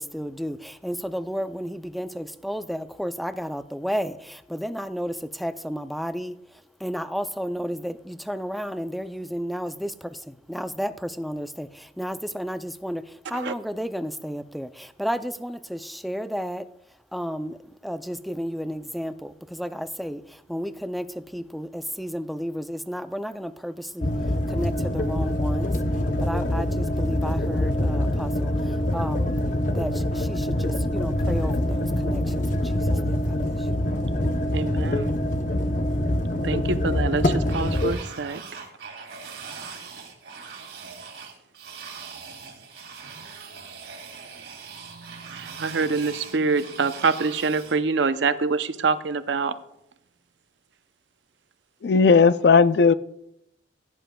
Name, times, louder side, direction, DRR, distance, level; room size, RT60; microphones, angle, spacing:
voice 1, 0.0-16.7 17.1-25.8 26.2-29.4 29.7-33.7, equal, ahead, 0.4 m, -32 dB
sound 1, 24.0-38.0, left 1 dB, 45° left, 0.8 m, -25 dB
voice 2, 34.5-35.1 36.4-38.4 44.9-49.5, right 4 dB, 90° right, 0.6 m, -26 dB
sound 2, 37.5-47.8, right 5 dB, 75° right, 2.2 m, -41 dB
voice 3, 51.8-52.9, left 5 dB, 65° left, 0.4 m, -16 dB
16.0 x 9.9 x 2.3 m
head